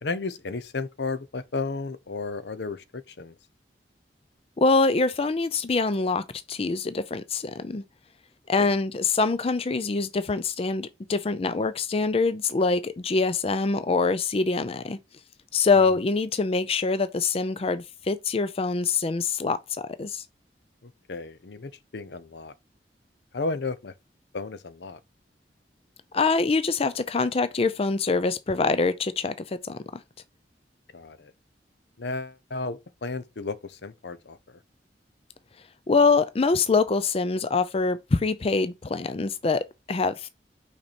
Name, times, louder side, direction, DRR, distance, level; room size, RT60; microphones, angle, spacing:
voice 1, 0.0-3.3 8.6-8.7 15.9-16.0 20.8-22.5 23.3-23.9 24.3-25.0 30.9-31.3 32.0-34.6, left 3 dB, 75° left, 0.7 m, -33 dB
voice 2, 4.6-7.8 8.5-15.0 15.5-19.6 20.0-20.2 26.1-29.8 35.9-40.3, left 4 dB, 35° left, 0.4 m, -24 dB
5.9 x 4.4 x 4.2 m
head